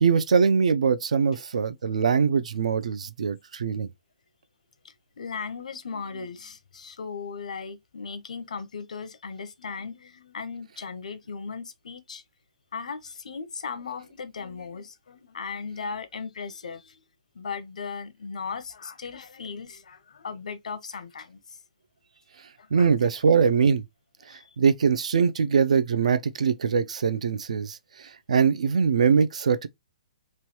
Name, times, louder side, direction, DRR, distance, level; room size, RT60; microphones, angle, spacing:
voice 1, 0.0-3.9 22.7-23.8 24.6-29.7, right 6 dB, 75° right, 0.4 m, -22 dB
voice 2, 4.8-12.2 12.7-17.0 17.3-21.6 22.6-22.9 23.2-23.3 24.3-24.4, left 5 dB, 80° left, 0.6 m, -37 dB
3.1 x 2.2 x 2.8 m
hypercardioid pair, 170°, 4 cm